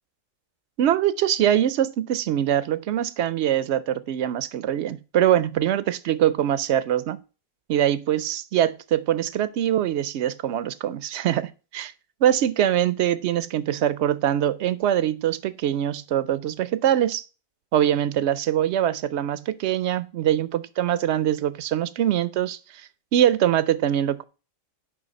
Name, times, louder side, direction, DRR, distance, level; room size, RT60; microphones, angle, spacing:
voice 1, 0.8-7.2 7.7-11.9 12.2-17.2 17.7-22.6 23.1-24.2, right 11 dB, 65° right, 0.8 m, -23 dB
10.5 x 3.6 x 5.3 m
omnidirectional pair, 1.4 m